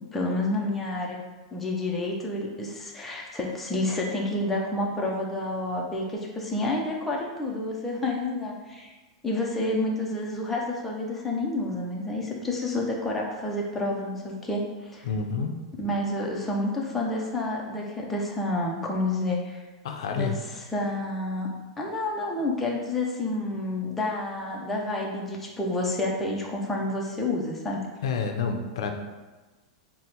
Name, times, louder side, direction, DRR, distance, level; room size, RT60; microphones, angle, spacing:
voice 1, 0.1-1.2 1.5-8.9 9.2-15.1 15.8-19.6 20.1-20.3 20.7-21.5 21.8-27.8, left 2 dB, 5° left, -3 dB, 0.4 m, -29 dB
voice 2, 15.0-15.5 19.8-20.4 28.0-28.9, left 5 dB, 65° left, 4 dB, 0.4 m, -28 dB
3.9 x 2.0 x 4.3 m, 1.2 s
supercardioid pair, 175°, 3 cm